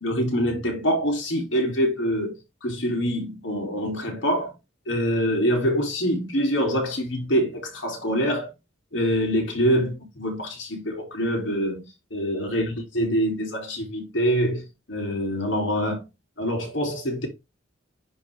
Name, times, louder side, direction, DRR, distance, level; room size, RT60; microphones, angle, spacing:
voice 1, 0.0-4.5 4.9-8.5 8.9-11.8 12.1-16.0 16.4-17.3, equal, 70° left, 3.2 m, -25 dB
9.9 x 3.8 x 3.5 m
head